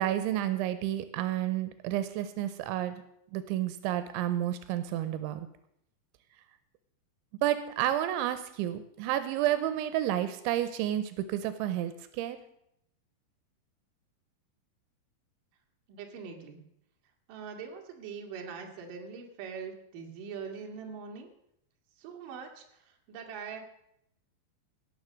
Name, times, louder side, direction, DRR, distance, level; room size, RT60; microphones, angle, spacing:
voice 1, 0.0-3.0 3.3-5.5 7.4-12.4, right 12 dB, 85° right, 11 dB, 3.1 m, -30 dB
voice 2, 15.9-16.6 17.3-21.3 22.0-23.6, right 6 dB, 55° right, 2 dB, 3.0 m, -42 dB
18.0 x 7.3 x 6.4 m, 0.77 s
omnidirectional pair, 5.3 m